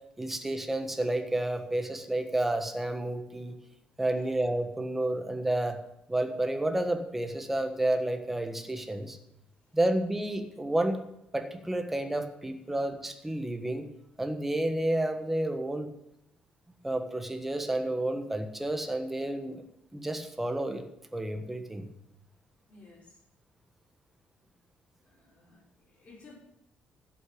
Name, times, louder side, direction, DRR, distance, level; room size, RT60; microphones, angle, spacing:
voice 1, 0.2-3.5 4.0-5.8 6.1-9.2 9.7-11.0 11.3-13.8 14.2-15.9 16.8-19.6 19.9-20.8 21.1-21.9, right 1 dB, 5° right, 6 dB, 1.3 m, -30 dB
voice 2, 22.7-23.2 25.0-26.3, left 3 dB, 35° left, -3 dB, 6.0 m, -55 dB
11.0 x 8.3 x 8.5 m, 0.83 s
cardioid pair, 165°, 3 cm